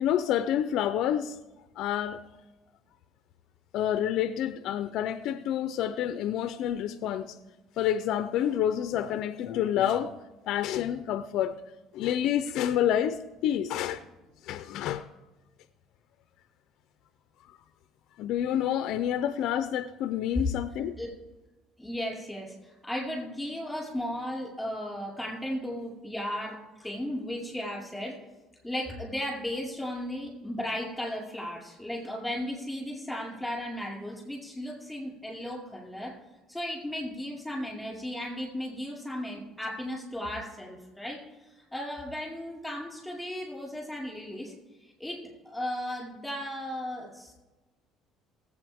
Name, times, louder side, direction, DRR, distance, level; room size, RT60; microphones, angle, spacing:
voice 1, 0.0-1.4 1.8-2.2 3.7-7.4 7.8-10.1 10.5-11.6 11.9-14.0 14.4-15.1 18.2-20.9, left 10 dB, 60° left, 0.5 m, -28 dB
voice 2, 21.8-28.2 28.6-36.1 36.5-44.5 44.8-47.3, left 1 dB, ahead, 4.6 m, -35 dB
20.5 x 8.3 x 3.6 m
cardioid pair, 150°, 0 cm